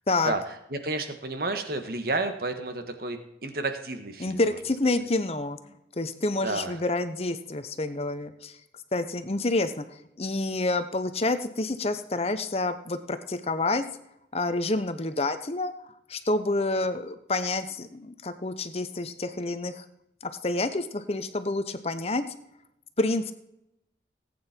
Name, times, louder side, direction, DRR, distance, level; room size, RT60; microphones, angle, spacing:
voice 1, 0.2-4.6 6.4-6.7, right 2 dB, 55° right, 7 dB, 1.6 m, -31 dB
voice 2, 4.2-8.6 8.9-9.9 10.2-13.8 14.3-15.7 16.1-19.8 20.4-22.3 23.0-23.3, left 2 dB, 35° left, 10 dB, 0.9 m, -28 dB
18.5 x 8.8 x 4.5 m, 0.85 s
head